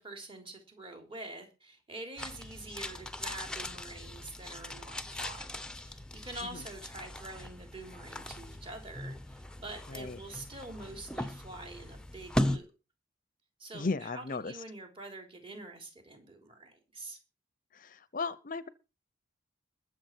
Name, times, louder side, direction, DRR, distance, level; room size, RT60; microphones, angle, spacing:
voice 1, 0.0-5.5 5.8-12.7 13.6-17.2, right 2 dB, 30° right, 3 dB, 3.4 m, -46 dB
sound 1, 2.2-12.6, left 1 dB, 5° left, 0.8 m, -38 dB
voice 2, 9.9-10.2 13.7-14.5 17.7-18.7, left 4 dB, 45° left, 16 dB, 0.7 m, -36 dB
21.5 x 7.2 x 4.6 m, 0.30 s
head